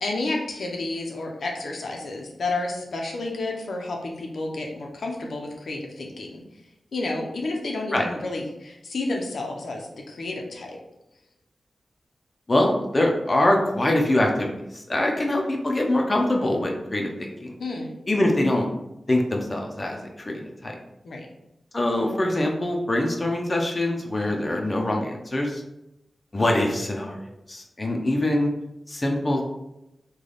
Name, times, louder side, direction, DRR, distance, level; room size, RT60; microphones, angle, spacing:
voice 1, 0.0-6.4 6.9-10.8 17.6-17.9 21.0-21.3, left 2 dB, 80° left, 0 dB, 0.6 m, -31 dB
voice 2, 12.5-17.5 18.1-18.7 19.1-20.7 21.7-25.6 26.3-28.5 28.9-29.4, left 1 dB, 30° left, 1 dB, 0.5 m, -24 dB
3.3 x 2.3 x 3.8 m, 0.88 s
wide cardioid pair, 80°, 0 cm